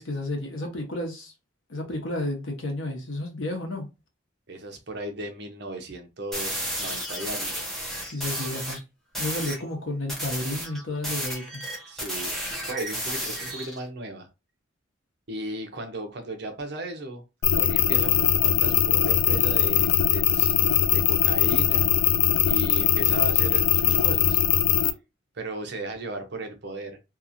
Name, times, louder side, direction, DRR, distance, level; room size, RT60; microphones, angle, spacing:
voice 1, 0.0-1.3 1.7-3.9 8.1-8.8 9.2-11.6, left 1 dB, 70° left, 0.9 m, -31 dB
voice 2, 4.5-7.7 11.9-12.4 12.7-14.3 15.3-17.2 17.5-20.6 20.9-22.1 22.4-24.4 25.3-27.0, right 1 dB, 55° right, 0.6 m, -36 dB
sound 1, 6.3-8.8 9.1-9.6 10.1-13.8, equal, ahead, 0.7 m, -32 dB
sound 2, 17.4-24.9, left 10 dB, 85° left, 0.3 m, -21 dB
2.9 x 2.3 x 2.5 m
head